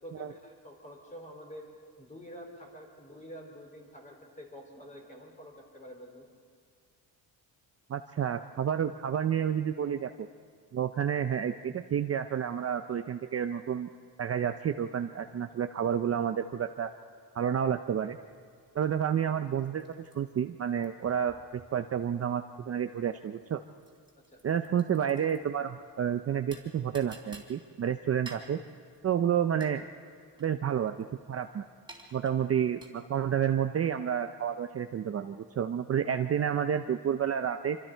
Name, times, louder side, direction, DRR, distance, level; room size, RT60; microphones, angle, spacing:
voice 1, 0.0-1.7 2.0-6.3 24.2-24.4, equal, 15° left, 1 dB, 4.2 m, -48 dB
voice 2, 7.9-10.1 10.7-13.9 14.2-16.9 17.3-18.2 18.7-19.8 20.1-23.6 24.4-28.6 29.0-29.8 30.4-31.7 32.1-37.8, right 8 dB, 35° right, 7 dB, 0.6 m, -30 dB
sound 1, 18.3-33.3, right 2 dB, 10° right, 3.5 m, -54 dB
26.5 x 24.5 x 4.5 m, 2.1 s
cardioid pair, 135°, 42 cm